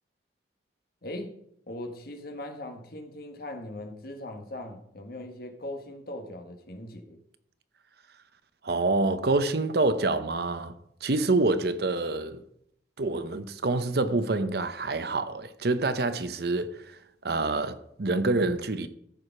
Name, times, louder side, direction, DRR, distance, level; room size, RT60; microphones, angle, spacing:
voice 1, 1.0-1.3 1.7-7.2, left 1 dB, 55° left, 1.6 m, -40 dB
voice 2, 8.6-10.8 11.0-12.4 13.0-18.9, right 2 dB, 60° right, 0.8 m, -27 dB
14.0 x 5.0 x 5.9 m
head